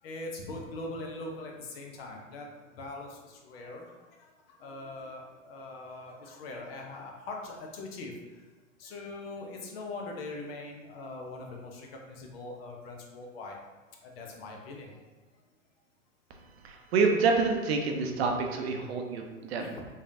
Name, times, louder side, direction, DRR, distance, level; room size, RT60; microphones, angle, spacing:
voice 1, 0.0-8.4 8.8-13.6 14.0-15.0 19.6-19.8, left 2 dB, 50° left, 1 dB, 0.8 m, -42 dB
voice 2, 16.6-19.6, right 4 dB, 55° right, 3 dB, 0.6 m, -27 dB
3.6 x 3.3 x 2.7 m, 1.2 s
hypercardioid pair, 110°, 39 cm